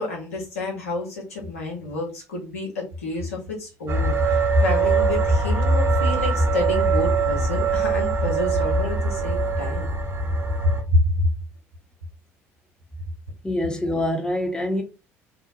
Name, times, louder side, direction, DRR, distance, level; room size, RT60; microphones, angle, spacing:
voice 1, 0.0-9.9 10.9-11.3, left 2 dB, 90° left, 0.9 m, -28 dB
sound 1, 3.9-10.8, right 3 dB, 35° right, 0.8 m, -22 dB
voice 2, 13.4-14.8, left 1 dB, 10° left, 0.7 m, -25 dB
2.6 x 2.0 x 2.6 m
hypercardioid pair, 60°, 7 cm